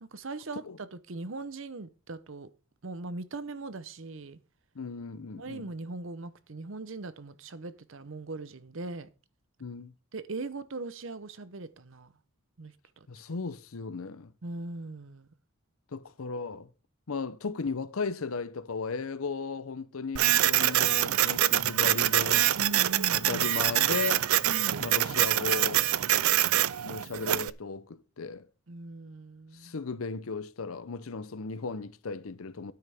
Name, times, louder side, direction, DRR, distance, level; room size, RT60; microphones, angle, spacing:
voice 1, 0.0-2.5 2.8-4.4 5.3-9.1 10.1-12.1 12.6-13.1 14.4-15.3 22.6-23.5 24.5-24.8 28.7-29.7, right 3 dB, 65° right, 0.8 m, -40 dB
voice 2, 4.8-5.7 9.6-9.9 13.1-14.3 15.9-16.7 17.1-22.5 23.1-24.3 24.8-25.9 26.8-28.5 29.5-32.7, left 4 dB, 80° left, 0.7 m, -36 dB
Printer, 20.2-27.5, right 13 dB, 85° right, 0.5 m, -25 dB
12.0 x 9.5 x 3.5 m
head